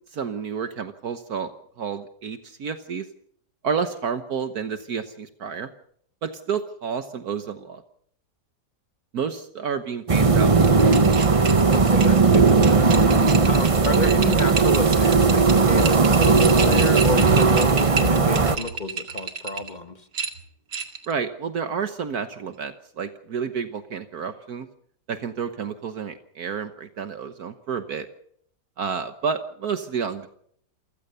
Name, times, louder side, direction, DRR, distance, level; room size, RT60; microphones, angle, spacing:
voice 1, 0.1-1.5 1.8-3.1 3.6-5.7 6.2-7.8 9.1-11.2 21.1-24.7 25.1-28.1 28.8-30.3, right 6 dB, 65° right, 9 dB, 1.6 m, -30 dB
sound 1, 10.1-18.6, right 4 dB, 25° right, 0.8 m, -17 dB
sound 2, 10.6-19.7 20.1-21.1, right 5 dB, 85° right, 2.7 m, -31 dB
voice 2, 11.7-13.0 13.4-20.0, left 2 dB, 30° left, 8 dB, 1.6 m, -30 dB
28.0 x 16.0 x 6.7 m, 0.68 s
omnidirectional pair, 1.8 m